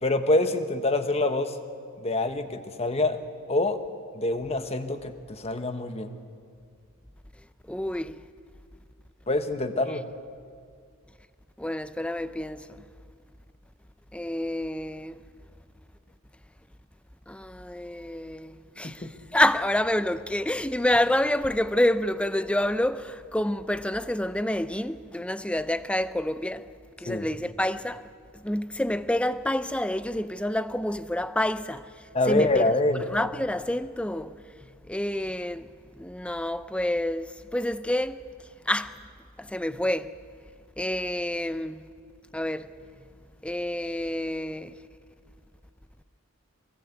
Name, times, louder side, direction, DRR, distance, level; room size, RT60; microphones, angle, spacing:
voice 1, 0.0-1.6 2.0-3.2 3.5-3.8 4.1-6.2 9.3-10.1 18.8-19.1 27.1-27.3 32.1-33.1, left 2 dB, 30° left, 1.2 m, -26 dB
voice 2, 7.7-8.2 11.6-12.7 14.1-15.2 17.3-19.1 19.3-26.7 27.0-28.0 28.4-31.9 32.3-32.6 33.1-34.3 34.9-35.7 36.0-38.2 38.7-38.9 39.4-40.1 40.8-41.9 42.3-42.7 43.4-44.8, left 1 dB, 5° left, 0.5 m, -28 dB
24.0 x 19.0 x 8.3 m
head